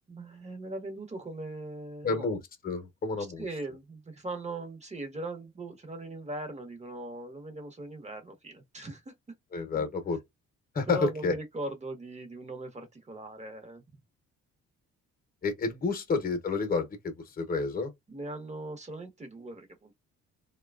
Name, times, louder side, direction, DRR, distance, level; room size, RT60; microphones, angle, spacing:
voice 1, 0.1-2.3 3.2-9.1 9.7-9.8 10.9-13.8 18.1-19.9, right 2 dB, 20° right, 1.0 m, -40 dB
voice 2, 2.0-3.5 9.5-10.2 10.7-11.3 15.4-17.9, left 4 dB, 30° left, 0.9 m, -30 dB
2.9 x 2.3 x 2.3 m
cardioid pair, 90°, 30 cm